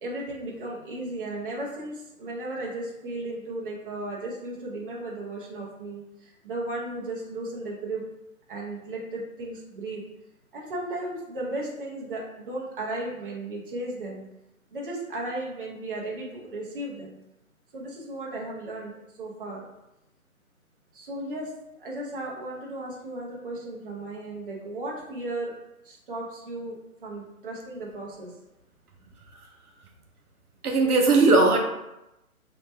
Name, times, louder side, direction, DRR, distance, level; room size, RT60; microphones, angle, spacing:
voice 1, 0.0-8.0 8.5-10.0 10.5-14.2 14.7-17.1 17.7-19.6 20.9-25.5 25.8-28.3, right 2 dB, 35° right, -3 dB, 0.9 m, -35 dB
voice 2, 30.6-31.6, right 3 dB, 85° right, 2 dB, 0.9 m, -18 dB
3.2 x 2.8 x 3.2 m, 0.91 s
hypercardioid pair, 155°, 44 cm